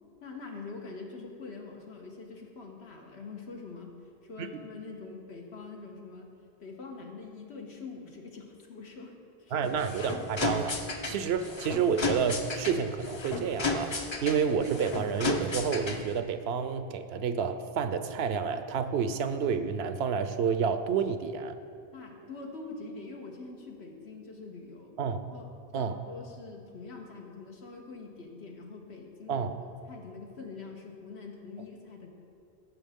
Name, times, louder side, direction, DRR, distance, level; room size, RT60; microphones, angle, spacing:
voice 1, 0.2-3.9 4.2-6.3 6.6-9.7 21.9-24.9 25.3-25.5 25.7-29.5 29.9-32.1, left 4 dB, 85° left, 1 dB, 1.5 m, -44 dB
voice 2, 9.5-10.8 11.1-13.9 14.2-21.6 25.0-25.2 25.7-26.0 29.3-29.5, right 6 dB, 75° right, 10 dB, 0.8 m, -29 dB
sound 1, 9.6-16.2, left 3 dB, 30° left, 0.6 m, -34 dB
15.5 x 7.1 x 3.6 m, 2.4 s
omnidirectional pair, 1.1 m